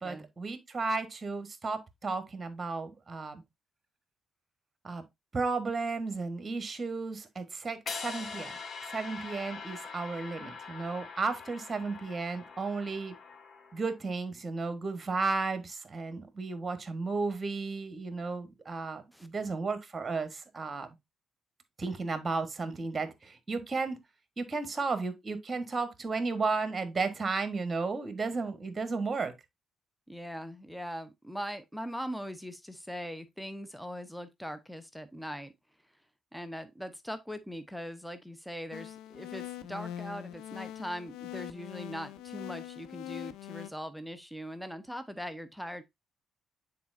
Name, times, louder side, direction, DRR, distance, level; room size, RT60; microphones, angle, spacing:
voice 1, 0.0-3.4 4.8-5.0 5.3-8.5 8.9-13.1 13.7-20.9 21.8-24.0 24.4-29.3, right 4 dB, 30° right, 1.3 m, -34 dB
sound 1, 7.9-14.0, left 5 dB, 45° left, 1.2 m, -43 dB
voice 2, 30.1-35.5 36.3-45.8, equal, ahead, 0.8 m, -41 dB
sound 2, 38.7-43.7, left 12 dB, 65° left, 0.5 m, -42 dB
9.3 x 4.2 x 2.6 m
figure-of-eight pair, 40°, 0 cm